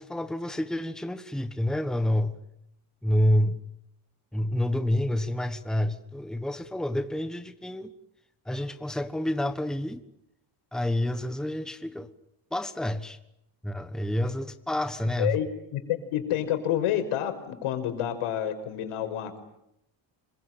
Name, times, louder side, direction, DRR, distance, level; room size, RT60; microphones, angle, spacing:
voice 1, 0.0-2.4 3.0-3.7 4.3-7.9 8.5-10.0 10.7-12.1 12.5-13.2 13.6-15.4, left 1 dB, ahead, 1.4 m, -28 dB
voice 2, 15.0-19.4, left 11 dB, 90° left, 5.5 m, -29 dB
27.0 x 23.5 x 9.1 m
cardioid pair, 160°, 49 cm